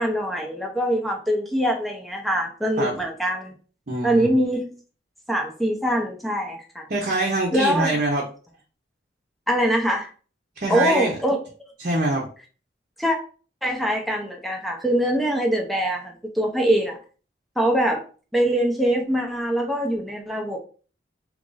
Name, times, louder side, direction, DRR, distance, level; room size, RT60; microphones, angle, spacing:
voice 1, 0.0-3.5 4.0-4.7 5.3-6.8 7.5-8.0 9.5-10.1 10.7-11.4 13.0-13.2 13.6-17.0 17.6-18.0 18.3-20.6, equal, ahead, 1 dB, 0.6 m, -23 dB
voice 2, 3.9-4.3 6.9-8.3 10.6-11.2 11.8-12.3, right 2 dB, 45° right, -2 dB, 0.7 m, -24 dB
2.9 x 2.5 x 3.8 m, 0.38 s
head